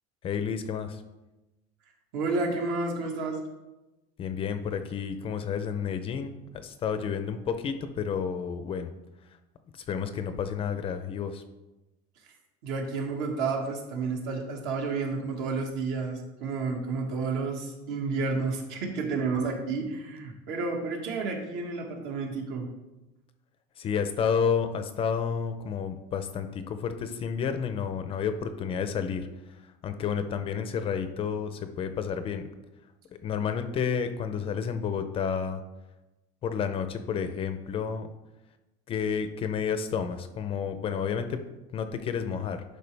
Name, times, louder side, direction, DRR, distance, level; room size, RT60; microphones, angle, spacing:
voice 1, 0.2-1.0 4.2-8.9 9.9-11.4 23.8-29.3 29.8-32.4 33.1-35.6 36.4-38.1 38.9-41.4 41.7-42.6, left 7 dB, 30° left, 9 dB, 0.5 m, -30 dB
voice 2, 2.1-3.4 12.6-22.7, right 4 dB, 65° right, 1 dB, 1.7 m, -31 dB
11.0 x 5.0 x 3.3 m, 1.0 s
cardioid pair, 160°, 19 cm